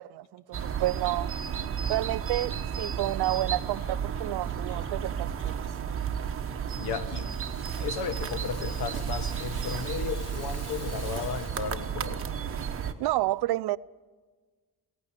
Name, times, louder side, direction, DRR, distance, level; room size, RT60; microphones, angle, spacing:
voice 1, 0.0-1.3 1.9-5.7 13.0-13.8, right 16 dB, 80° right, 0.6 m, -30 dB
sound 1, 0.5-12.9, right 7 dB, 35° right, 1.1 m, -33 dB
voice 2, 6.8-7.3 7.7-12.3, left 7 dB, 90° left, 1.5 m, -35 dB
Rattle (instrument), 6.8-11.9, left 2 dB, 40° left, 3.0 m, -49 dB
17.0 x 16.0 x 9.7 m
cardioid pair, 155°, 39 cm